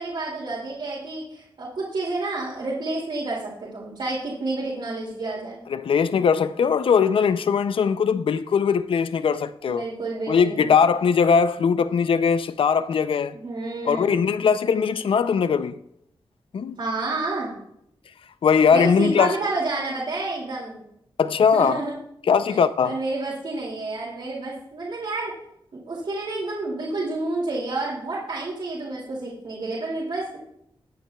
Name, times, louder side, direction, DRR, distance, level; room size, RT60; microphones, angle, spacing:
voice 1, 0.0-5.6 9.7-10.8 13.3-14.2 16.8-17.5 18.7-20.7 21.5-21.9 22.5-22.6 22.8-25.3 25.7-30.4, right 2 dB, 70° right, 2.4 m, -29 dB
voice 2, 5.7-9.9 10.3-13.4 13.9-15.8 16.5-16.8 18.4-19.4 21.2-21.8 22.2-23.0, left 6 dB, 70° left, 0.5 m, -20 dB
20.5 x 8.9 x 2.3 m
wide cardioid pair, 175°, 9 cm